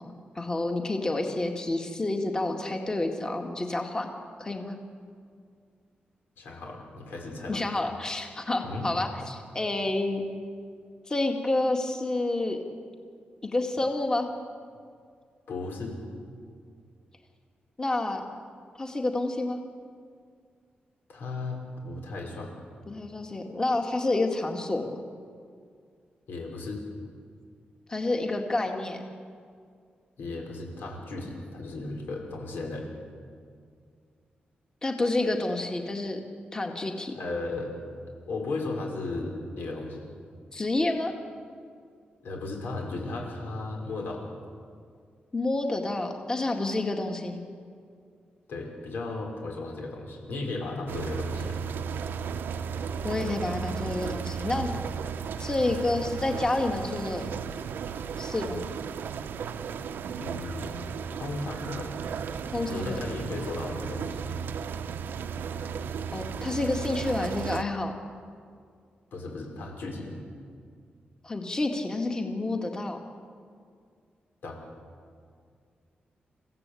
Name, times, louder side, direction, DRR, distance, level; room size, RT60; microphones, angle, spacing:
voice 1, 0.4-4.1 4.4-4.8 7.5-10.2 11.1-12.6 13.4-14.3 17.8-18.2 18.8-19.6 22.9-24.9 27.9-29.0 34.8-36.2 36.5-37.1 40.5-41.1 45.3-47.4 53.0-54.7 55.4-57.2 58.2-58.6 62.5-63.0 66.1-67.9 71.2-73.0, left 2 dB, 20° left, 3 dB, 2.0 m, -29 dB
voice 2, 6.4-7.6 8.6-8.9 15.5-16.0 21.1-22.5 26.3-26.8 30.2-32.9 37.1-37.7 38.3-40.1 42.2-44.2 48.5-51.6 60.2-60.9 61.2-61.9 62.7-64.3 69.1-70.1 74.4-74.6, left 2 dB, 85° left, 1 dB, 5.9 m, -35 dB
sound 1, 50.9-67.6, right 6 dB, 85° right, 0.9 m, -35 dB
28.5 x 16.0 x 8.5 m, 2.2 s
wide cardioid pair, 140°, 3 cm